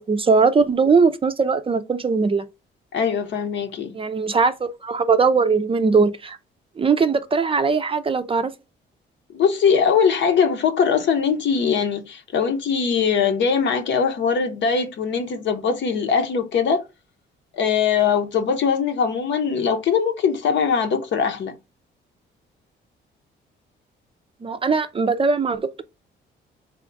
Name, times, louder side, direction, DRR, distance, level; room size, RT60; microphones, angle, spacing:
voice 1, 0.0-2.4 3.9-6.4 6.8-8.5 24.4-25.8, right 4 dB, 25° right, 0.5 m, -20 dB
voice 2, 2.9-4.0 9.3-16.8 17.5-21.6, left 6 dB, 65° left, 0.9 m, -21 dB
3.4 x 2.3 x 3.8 m
cardioid pair, 90°, 20 cm